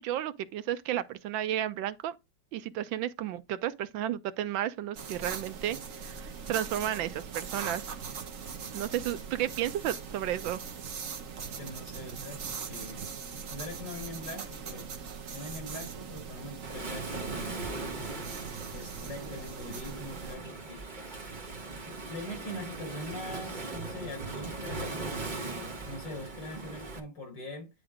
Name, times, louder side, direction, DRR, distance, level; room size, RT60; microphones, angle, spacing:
voice 1, 0.0-2.2 2.5-7.9 8.7-10.6, right 11 dB, 80° right, 1.4 m, -33 dB
sound 1, 4.9-20.3, right 6 dB, 50° right, 1.2 m, -41 dB
voice 2, 11.6-13.1 13.5-14.9 15.3-18.2 18.7-20.8 21.7-27.7, left 1 dB, 70° left, 5.3 m, -43 dB
Waves surf, 16.6-27.0, right 3 dB, 25° right, 1.4 m, -39 dB
9.7 x 3.3 x 5.0 m
omnidirectional pair, 2.1 m